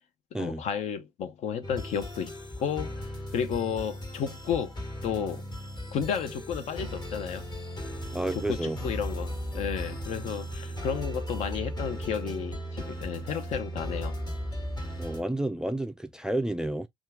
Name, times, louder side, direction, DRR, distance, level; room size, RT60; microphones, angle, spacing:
voice 1, 0.4-2.3 2.6-3.0 3.3-4.7 5.0-5.4 5.9-7.5 8.3-14.2, left 7 dB, 55° left, 0.7 m, -32 dB
sound 1, 1.6-15.2, equal, 30° left, 1.2 m, -36 dB
voice 2, 8.1-8.8 9.5-9.6 15.0-16.9, right 1 dB, 5° right, 0.4 m, -30 dB
2.8 x 2.4 x 3.5 m
figure-of-eight pair, 50°, 14 cm